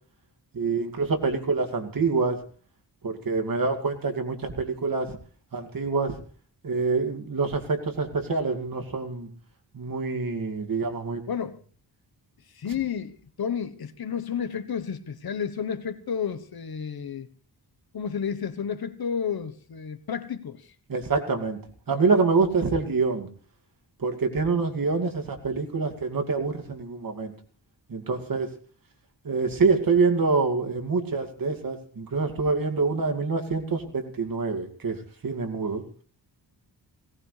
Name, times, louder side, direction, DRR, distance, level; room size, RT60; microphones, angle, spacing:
voice 1, 0.5-2.4 3.0-5.2 5.5-6.2 6.6-9.3 9.7-11.2 20.9-21.6 21.9-23.3 24.0-27.3 27.9-28.5 29.2-35.8, right 4 dB, 55° right, 2.4 m, -26 dB
voice 2, 11.3-11.6 12.6-13.1 13.4-17.3 17.9-20.6, left 7 dB, 60° left, 1.2 m, -31 dB
18.0 x 17.5 x 3.3 m
wide cardioid pair, 100°, 41 cm